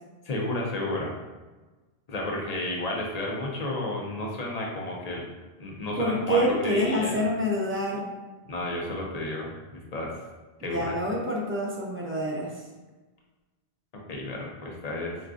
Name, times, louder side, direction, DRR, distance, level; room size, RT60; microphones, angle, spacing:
voice 1, 0.2-1.1 2.1-5.2 5.6-7.2 8.5-10.1 10.6-10.9 14.1-15.2, left 1 dB, 50° left, -1 dB, 0.6 m, -32 dB
voice 2, 6.0-8.1 10.6-12.5, equal, 20° right, -4 dB, 0.3 m, -27 dB
3.5 x 2.4 x 2.4 m, 1.2 s
omnidirectional pair, 1.1 m